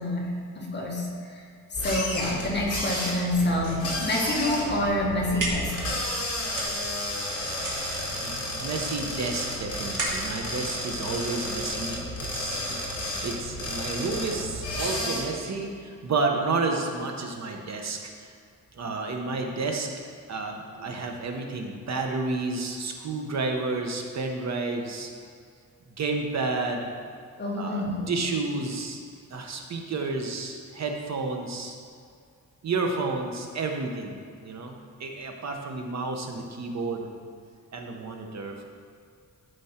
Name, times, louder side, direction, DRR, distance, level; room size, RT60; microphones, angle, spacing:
voice 1, 0.0-5.8 27.4-28.2, left 1 dB, 35° left, -2 dB, 1.6 m, -28 dB
sound 1, 1.7-15.2, left 1 dB, 50° left, 2.4 m, -32 dB
sound 2, 5.0-11.8, right 2 dB, 75° right, 2.2 m, -36 dB
voice 2, 8.2-12.0 12.3-18.3 18.7-19.9 20.3-25.1 26.0-26.9 27.5-29.0 29.3-31.8 32.6-37.1 37.7-38.6, right 3 dB, 60° right, 2 dB, 1.0 m, -31 dB
12.0 x 5.2 x 4.4 m, 2.2 s
wide cardioid pair, 145°, 31 cm